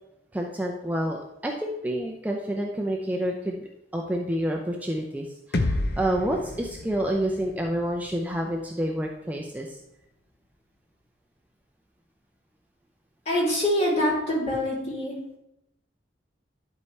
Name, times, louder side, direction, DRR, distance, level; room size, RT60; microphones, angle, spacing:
voice 1, 0.3-9.8, right 1 dB, 10° right, 0 dB, 0.5 m, -29 dB
sound 1, 5.5-9.5, left 2 dB, 60° left, 0.7 m, -32 dB
voice 2, 13.2-15.1, left 1 dB, 40° left, -6 dB, 3.2 m, -25 dB
11.0 x 4.7 x 3.2 m, 0.83 s
head